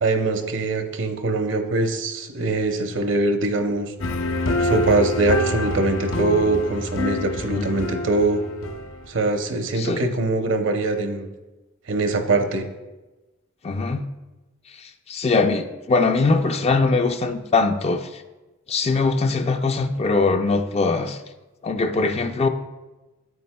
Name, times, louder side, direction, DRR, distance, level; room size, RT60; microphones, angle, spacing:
voice 1, 0.0-3.9 4.6-8.4 9.1-11.3 11.9-12.7, right 2 dB, 65° right, 6 dB, 0.7 m, -22 dB
sound 1, 4.0-9.2, left 1 dB, 85° left, 0.8 m, -26 dB
voice 2, 9.7-10.1 13.6-14.0 14.7-18.2 18.7-21.2 21.6-22.5, left 3 dB, 30° left, 7 dB, 0.4 m, -22 dB
9.2 x 8.2 x 2.2 m, 1.1 s
head